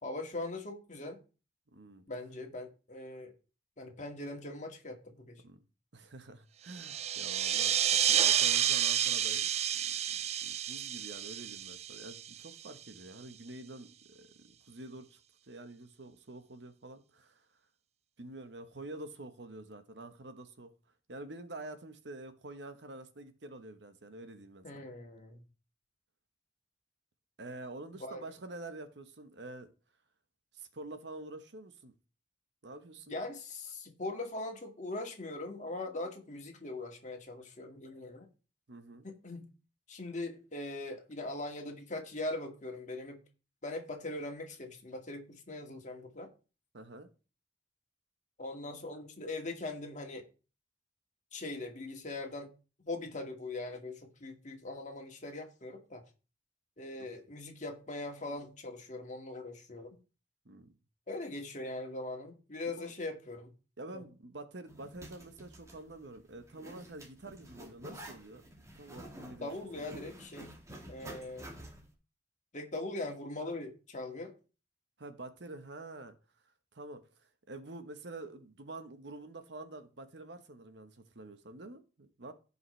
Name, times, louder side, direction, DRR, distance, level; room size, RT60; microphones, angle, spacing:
voice 1, 0.0-1.2 2.1-3.3 3.8-5.4 24.6-25.4 27.9-28.2 33.1-38.3 39.0-39.5 39.9-43.2 43.6-46.3 48.4-50.2 51.3-52.5 52.8-56.0 56.8-60.0 61.1-63.5 63.9-64.0 69.4-70.5 70.9-71.5 72.5-74.3, left 2 dB, 45° left, 2.0 m, -41 dB
voice 2, 1.7-2.0 5.4-5.6 5.9-7.8 8.1-15.2 15.5-17.4 18.2-20.7 21.1-24.9 27.4-29.7 30.5-31.9 32.6-33.1 38.7-39.1 46.7-47.1 57.0-57.1 60.4-60.7 62.8-62.9 63.8-68.4 68.8-69.5 69.8-70.1 75.0-76.2 76.7-77.0 77.5-82.3, right 2 dB, 70° right, 1.1 m, -47 dB
sound 1, 6.7-12.8, right 10 dB, 35° right, 0.4 m, -30 dB
Zipper (clothing), 64.7-71.9, right 1 dB, 15° right, 1.8 m, -50 dB
16.0 x 5.5 x 3.3 m
head